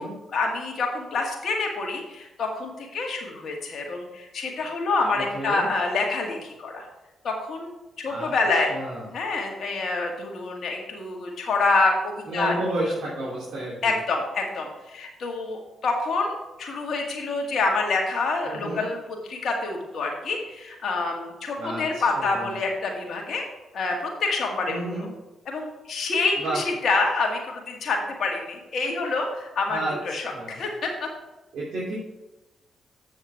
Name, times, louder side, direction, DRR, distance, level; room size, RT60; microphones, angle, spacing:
voice 1, 0.3-6.9 7.2-8.7 9.1-12.5 13.8-19.0 19.3-23.4 23.7-24.8 25.5-29.8 30.0-31.1, left 3 dB, 65° left, 1 dB, 2.0 m, -27 dB
voice 2, 5.1-5.7 8.1-8.3 8.7-9.1 12.3-14.0 18.4-18.8 21.6-22.6 24.7-25.1 26.4-26.6 29.7-30.6 31.5-31.9, right 1 dB, 70° right, -7 dB, 3.0 m, -31 dB
7.9 x 6.4 x 4.8 m, 1.0 s
hypercardioid pair, 45°, 0 cm